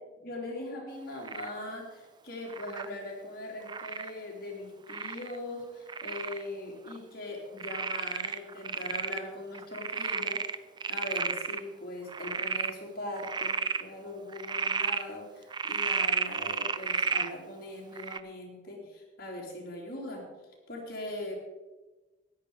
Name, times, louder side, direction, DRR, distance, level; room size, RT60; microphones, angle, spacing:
voice 1, 0.2-10.4 10.9-20.3 20.7-21.4, left 1 dB, 50° left, -1 dB, 3.2 m, -40 dB
Frog, 1.3-1.6 2.5-2.9 3.7-4.1 4.9-5.4 5.9-6.4 6.9-7.0 7.6-9.2 9.5-11.6 12.1-12.7 13.2-13.8 14.3-15.0 15.5-17.3 18.0-18.2, right 5 dB, 20° right, 0.4 m, -32 dB
13.5 x 10.5 x 4.9 m, 1.2 s
head